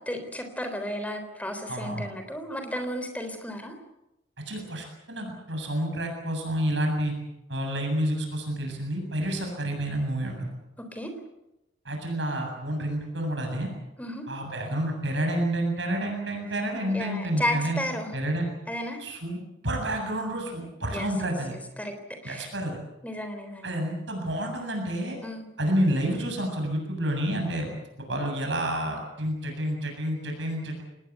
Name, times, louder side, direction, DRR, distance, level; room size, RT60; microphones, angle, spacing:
voice 1, 0.0-3.7 10.8-11.1 14.0-14.3 16.9-18.1 18.7-19.0 20.9-21.9 22.2-22.5 23.0-23.7 25.2-25.4, equal, 10° left, 6 dB, 3.7 m, -33 dB
voice 2, 1.7-2.1 4.5-7.1 7.5-10.5 11.9-13.7 14.3-17.8 18.1-18.5 19.0-21.5 22.2-22.8 23.6-25.2 25.6-27.7 28.0-30.8, right 1 dB, 65° right, 3 dB, 7.5 m, -29 dB
25.0 x 20.0 x 8.3 m, 0.92 s
head